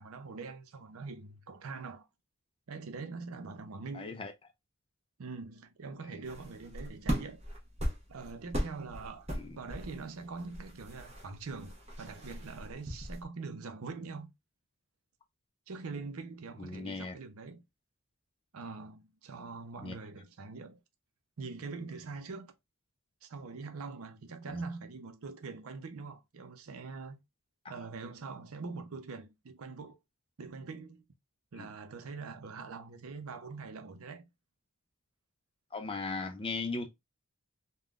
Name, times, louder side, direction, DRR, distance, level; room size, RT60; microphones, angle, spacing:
voice 1, 0.0-2.1 2.7-4.1 5.2-7.4 8.1-9.3 9.6-14.3 15.7-17.6 18.5-20.8 21.4-22.5 23.2-27.2 27.7-30.0 30.4-31.1 31.5-34.3, right 4 dB, 75° right, 0.6 m, -43 dB
voice 2, 3.9-4.3 6.1-6.2 9.3-9.6 16.6-17.1 19.8-20.0 24.5-24.6 27.6-27.8 31.6-31.7 35.7-36.9, left 3 dB, 25° left, 0.4 m, -38 dB
sound 1, 6.2-13.3, equal, 30° right, 0.8 m, -39 dB
3.5 x 2.2 x 2.4 m
head